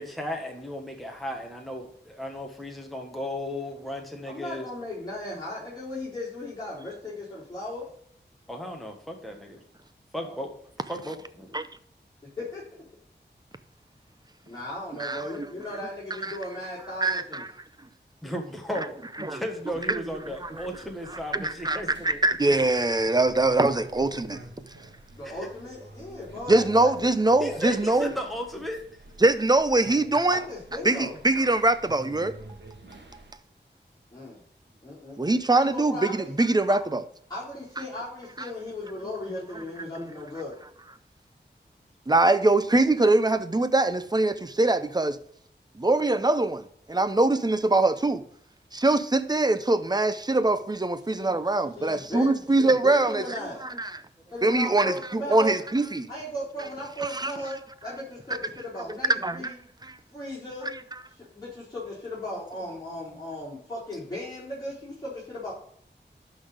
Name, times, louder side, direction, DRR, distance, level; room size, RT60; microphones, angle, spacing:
voice 1, 0.0-4.7 8.5-9.6 10.1-10.5 10.9-11.6 18.2-22.2 25.2-25.5 27.4-28.8, equal, ahead, 1.5 m, -35 dB
voice 2, 4.2-7.9 10.2-10.4 12.4-12.6 14.5-17.4 25.2-27.1 27.5-28.1 29.7-29.8 30.3-31.2 34.1-34.4 34.8-36.3 36.7-36.8 37.3-40.5 51.2-51.4 51.8-53.6 54.3-55.6 56.1-59.6 60.1-60.7 61.3-65.5, left 1 dB, 20° left, 4.0 m, -37 dB
voice 3, 15.0-15.5 16.2-16.4 17.0-17.5 19.2-19.4 19.9-20.0 20.4-20.7 21.1-24.4 26.5-28.1 29.2-30.5 30.8-32.3 35.2-37.0 39.8-40.1 42.1-45.2 45.7-48.2 48.7-53.2 53.6-54.0 54.4-56.1 57.0-57.3 58.9-59.5 59.8-60.0, right 2 dB, 20° right, 0.7 m, -23 dB
sound 1, 19.7-33.3, right 2 dB, 75° right, 1.6 m, -49 dB
11.5 x 4.1 x 5.0 m
wide cardioid pair, 80°, 19 cm